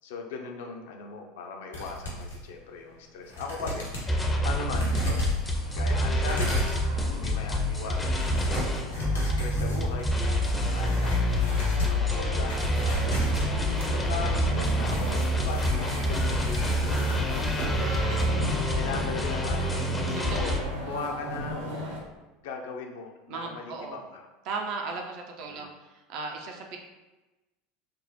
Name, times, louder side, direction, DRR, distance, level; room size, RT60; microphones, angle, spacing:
voice 1, 0.0-5.3 5.7-6.7 7.1-8.4 9.2-10.2 10.6-11.4 11.9-13.4 13.9-17.9 18.8-19.8 20.4-20.5 20.8-21.8 22.4-24.2 25.4-25.7, left 4 dB, 60° left, 3 dB, 0.5 m, -39 dB
sound 1, 1.7-2.4 2.9-3.0 3.3-4.1 4.7-17.8 18.1-18.2, left 1 dB, 80° left, 1.1 m, -35 dB
sound 2, 4.1-20.6, equal, 15° left, 0.5 m, -27 dB
sound 3, 4.7-22.0, equal, 75° right, 0.8 m, -38 dB
voice 2, 20.1-20.5 23.3-24.0 24.5-26.8, right 4 dB, 50° right, 2 dB, 0.4 m, -36 dB
5.1 x 2.0 x 2.8 m, 1.1 s
figure-of-eight pair, 75°, 0 cm